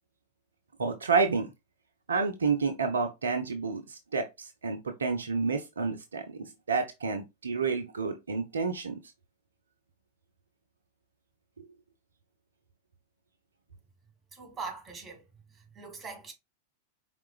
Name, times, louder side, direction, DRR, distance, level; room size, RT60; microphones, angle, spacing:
voice 1, 0.8-1.5 2.1-9.0, right 4 dB, 70° right, 0.6 m, -30 dB
voice 2, 14.3-15.2 15.7-16.3, right 4 dB, 20° right, 2.1 m, -41 dB
4.7 x 3.6 x 2.4 m
figure-of-eight pair, 90°, 0 cm